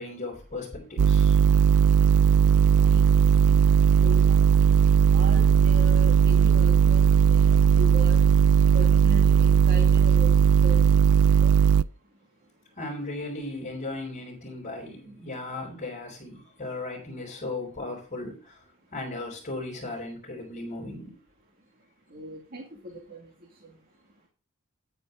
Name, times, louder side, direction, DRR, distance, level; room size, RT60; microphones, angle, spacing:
voice 1, 0.0-1.4 12.8-18.6 18.9-21.2, left 2 dB, 35° left, 3.9 m, -36 dB
sound 1, 1.0-11.8, right 7 dB, 90° right, 0.4 m, -18 dB
voice 2, 1.4-12.8 16.4-16.6 18.8-18.9 21.6-24.3, right 1 dB, 45° right, 2.1 m, -41 dB
10.5 x 8.9 x 3.8 m
head